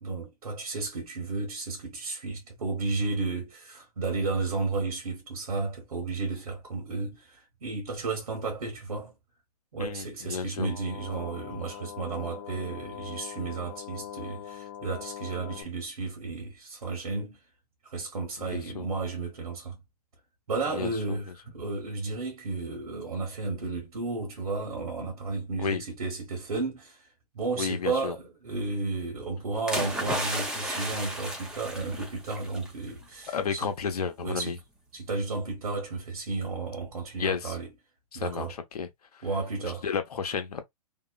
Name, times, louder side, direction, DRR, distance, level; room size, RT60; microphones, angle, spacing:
voice 1, 0.0-9.2 9.7-17.4 17.8-19.8 20.5-27.1 27.3-33.7 34.2-34.5 34.9-37.7 38.1-38.5 39.2-39.8, right 3 dB, 85° right, 1.1 m, -33 dB
voice 2, 9.8-10.7 15.5-15.7 18.4-18.9 20.7-21.2 25.6-25.8 27.6-28.2 33.3-34.6 37.2-37.6 38.1-39.3 39.6-40.7, left 6 dB, 80° left, 0.7 m, -32 dB
sound 1, 10.6-15.6, left 10 dB, 40° left, 0.5 m, -42 dB
sound 2, 29.7-32.7 33.0-33.3, right 1 dB, 5° right, 0.6 m, -33 dB
2.9 x 2.0 x 2.3 m
hypercardioid pair, 130°, 19 cm